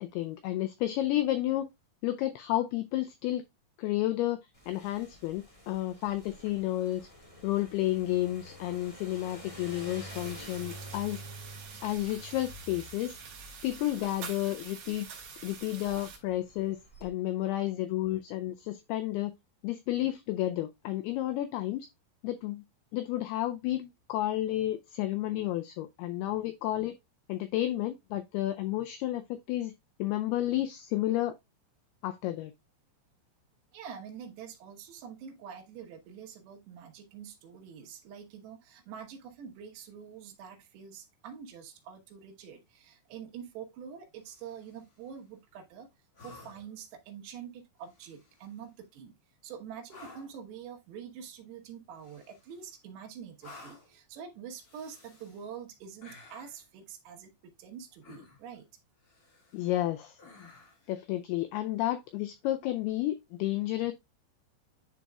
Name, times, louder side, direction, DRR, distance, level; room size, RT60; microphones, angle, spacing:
voice 1, 0.0-1.7 2.0-3.4 3.8-7.1 7.4-11.2 11.8-13.1 13.6-15.1 15.4-19.3 19.6-21.9 22.2-22.6 22.9-26.9 27.3-29.2 29.5-29.7 30.0-31.4 32.0-32.5 59.5-60.2 60.9-63.9, left 14 dB, 90° left, 2.2 m, -31 dB
sound 1, 4.5-17.1, right 1 dB, 15° left, 1.3 m, -49 dB
sound 2, 10.1-16.2, right 6 dB, 55° right, 3.2 m, -46 dB
voice 2, 33.7-45.9 46.2-49.2 49.4-58.6, right 7 dB, 80° right, 3.3 m, -46 dB
sound 3, 44.2-44.9 46.1-46.8 47.8-48.6 49.9-50.4 52.0-52.7 53.4-54.0 54.6-55.5 56.0-56.6 58.0-58.6 59.0-59.7 60.2-60.9 62.8-62.9, left 3 dB, 60° left, 0.9 m, -53 dB
11.0 x 4.0 x 2.2 m
omnidirectional pair, 5.1 m